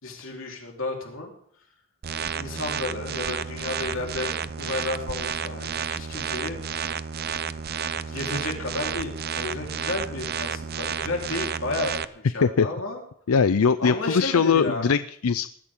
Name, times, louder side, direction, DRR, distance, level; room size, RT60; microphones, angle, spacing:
voice 1, 0.0-1.3 2.3-6.6 7.9-13.0 13.8-14.9, left 2 dB, 65° left, 0 dB, 4.0 m, -32 dB
sound 1, 2.0-12.0, right 7 dB, 45° right, 0.6 m, -31 dB
voice 2, 13.3-15.5, left 6 dB, 85° left, 14 dB, 0.5 m, -21 dB
19.5 x 14.0 x 3.8 m, 0.64 s
head